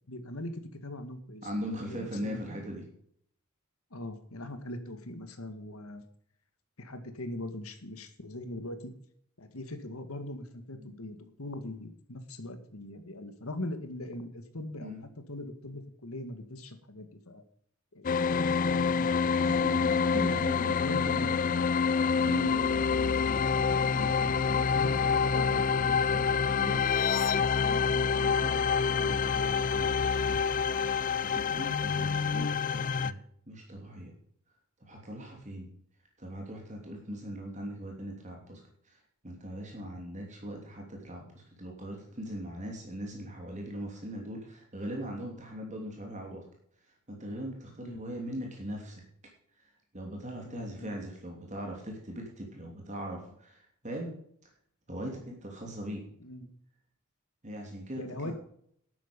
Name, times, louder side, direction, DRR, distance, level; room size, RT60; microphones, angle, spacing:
voice 1, 0.1-2.4 3.9-6.0 6.8-8.9 9.4-14.9 15.3-17.4 17.9-19.2 20.2-21.4 24.6-26.1 31.9-32.1 47.8-48.0 50.4-51.0 56.2-56.5 58.0-58.3, left 1 dB, 75° left, 9 dB, 2.0 m, -41 dB
voice 2, 1.4-2.8 10.8-11.0 14.8-15.0 19.3-21.5 22.1-26.9 27.6-29.9 30.2-30.4 31.2-33.2 33.5-34.1 34.8-35.7 36.2-39.0 39.2-46.4 47.1-49.0 49.9-54.2 54.9-56.0 57.4-58.3, equal, 35° right, 0 dB, 3.0 m, -40 dB
sound 1, 18.0-33.1, left 6 dB, 40° left, 0.4 m, -27 dB
12.0 x 9.3 x 5.4 m, 0.65 s
head